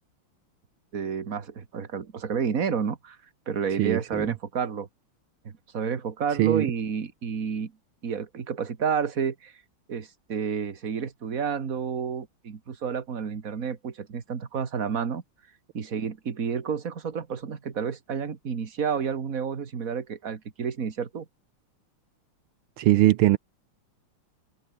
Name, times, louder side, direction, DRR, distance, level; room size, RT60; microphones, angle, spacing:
voice 1, 0.9-3.2 3.5-4.9 5.4-7.7 8.0-9.5 9.9-15.2 15.7-21.3, right 6 dB, 40° right, 2.1 m, -30 dB
voice 2, 3.8-4.3 6.4-6.6 22.8-23.4, right 15 dB, 75° right, 1.5 m, -21 dB
open air
omnidirectional pair, 2.4 m